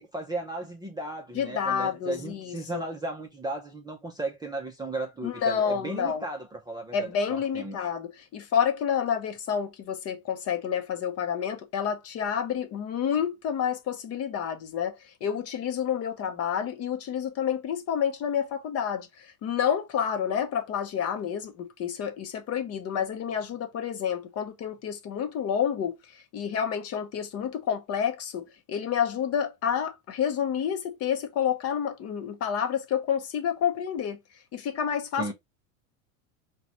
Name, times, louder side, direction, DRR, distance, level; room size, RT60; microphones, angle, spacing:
voice 1, 0.0-7.9 35.2-35.3, right 2 dB, 10° right, 0.5 m, -35 dB
voice 2, 1.3-2.8 5.2-6.2 6.9-34.2 34.5-35.3, left 8 dB, 35° left, 0.7 m, -29 dB
3.9 x 2.3 x 2.8 m
supercardioid pair, 120°, 42 cm